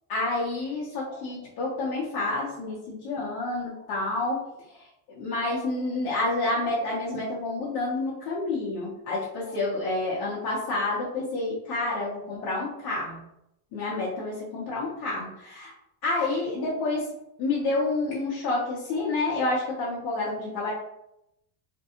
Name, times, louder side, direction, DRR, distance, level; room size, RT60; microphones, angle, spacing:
voice 1, 0.1-4.4 4.7-13.2 13.7-15.7 16.0-17.1 17.4-20.7, left 2 dB, 50° left, -7 dB, 0.7 m, -29 dB
2.5 x 2.2 x 2.8 m, 0.81 s
cardioid pair, 165°, 44 cm